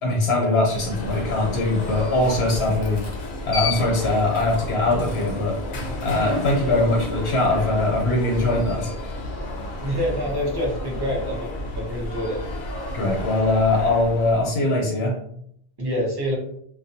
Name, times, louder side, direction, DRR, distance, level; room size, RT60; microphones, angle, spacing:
voice 1, 0.0-3.0 3.4-5.5 6.0-8.9 12.9-15.2, left 2 dB, 90° left, -2 dB, 0.9 m, -21 dB
Alarm, 0.6-14.5, left 2 dB, 60° left, 0.7 m, -31 dB
voice 2, 9.8-12.4 15.8-16.3, equal, 25° right, -3 dB, 0.7 m, -26 dB
2.4 x 2.2 x 2.6 m, 0.69 s
omnidirectional pair, 1.1 m